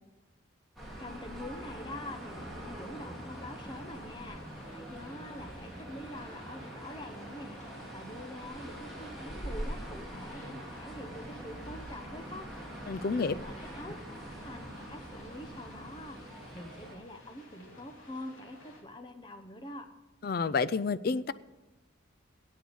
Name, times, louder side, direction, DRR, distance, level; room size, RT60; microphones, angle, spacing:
sound 1, 0.8-17.0, right 1 dB, ahead, 2.5 m, -43 dB
voice 1, 1.0-4.4 4.7-7.6 7.9-12.5 13.1-13.9 14.3-19.9, left 1 dB, 25° left, 7 dB, 0.9 m, -45 dB
sound 2, 3.3-18.8, left 1 dB, 75° left, 2.6 m, -54 dB
voice 2, 12.9-13.3 20.2-21.3, left 4 dB, 45° left, 17 dB, 0.4 m, -29 dB
9.2 x 8.6 x 8.0 m, 1.1 s
head